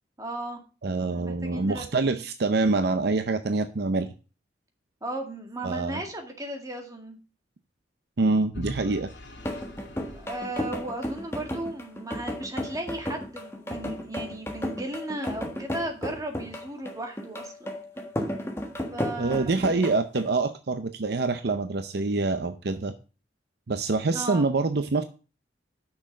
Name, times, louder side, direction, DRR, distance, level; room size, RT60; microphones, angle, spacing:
voice 1, 0.2-0.6 1.1-2.2 5.0-7.2 10.1-17.8 18.9-19.7 24.1-24.5, right 1 dB, 20° right, 3 dB, 2.0 m, -36 dB
voice 2, 0.8-4.1 5.6-6.0 8.2-9.1 19.2-22.9 23.7-25.0, right 3 dB, 60° right, 10 dB, 0.6 m, -26 dB
Vehicle / Engine, 8.5-11.5, left 1 dB, 75° left, 2.6 m, -43 dB
sound 1, 9.4-20.3, left 1 dB, 15° left, 1.4 m, -34 dB
6.3 x 6.2 x 7.4 m, 0.34 s
head